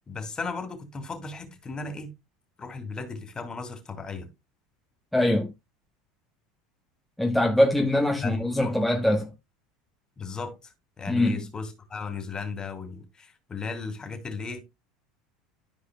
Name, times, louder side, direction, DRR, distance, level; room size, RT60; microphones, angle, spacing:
voice 1, 0.1-2.1 2.6-4.3 8.2-8.8 10.2-10.6 11.0-14.6, left 4 dB, 25° left, 2.6 m, -35 dB
voice 2, 5.1-5.5 7.2-9.3 11.1-11.4, left 1 dB, 5° left, 1.1 m, -23 dB
13.5 x 4.9 x 2.3 m
supercardioid pair, 95°, 3 cm